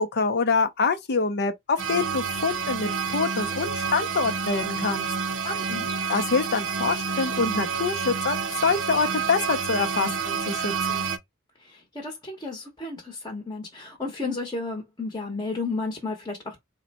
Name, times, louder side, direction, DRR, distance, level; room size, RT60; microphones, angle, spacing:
voice 1, 0.0-5.1 6.1-11.0, left 4 dB, 50° left, 0.6 m, -26 dB
sound 1, 1.8-11.2, right 6 dB, 60° right, 0.6 m, -29 dB
voice 2, 5.4-5.9 11.6-16.6, left 3 dB, 20° left, 0.9 m, -33 dB
3.9 x 2.2 x 4.0 m
head